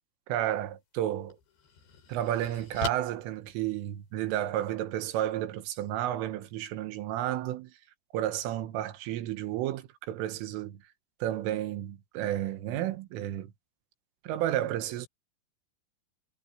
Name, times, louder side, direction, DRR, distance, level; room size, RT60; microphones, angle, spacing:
voice 1, 0.3-1.4 2.1-7.8 8.1-10.8 11.2-13.5 14.3-15.1, right 12 dB, 85° right, 3.9 m, -32 dB
sound 1, 0.6-0.7 1.3-4.3, left 5 dB, 60° left, 6.5 m, -42 dB
omnidirectional pair, 5.7 m